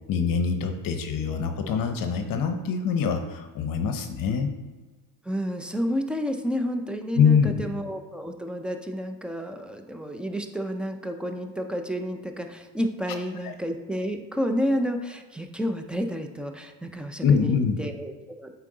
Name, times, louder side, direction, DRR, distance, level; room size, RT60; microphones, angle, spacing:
voice 1, 0.1-4.5 7.1-7.5 13.4-13.5 17.2-17.8, left 6 dB, 45° left, 7 dB, 0.8 m, -24 dB
voice 2, 5.2-18.5, equal, ahead, 6 dB, 0.3 m, -30 dB
8.2 x 4.6 x 3.8 m, 1.3 s
supercardioid pair, 110°, 47 cm